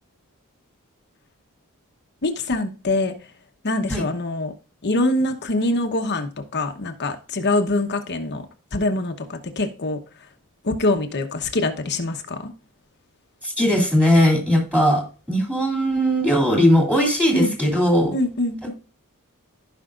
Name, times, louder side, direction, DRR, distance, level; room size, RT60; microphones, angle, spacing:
voice 1, 2.2-3.1 3.6-4.5 4.8-8.5 8.7-10.0 10.6-12.5 17.3-17.5 18.1-18.7, left 2 dB, 50° left, 1.0 m, -24 dB
voice 2, 13.4-15.0 15.3-18.1, equal, 5° right, 2.9 m, -18 dB
15.0 x 5.5 x 2.5 m
head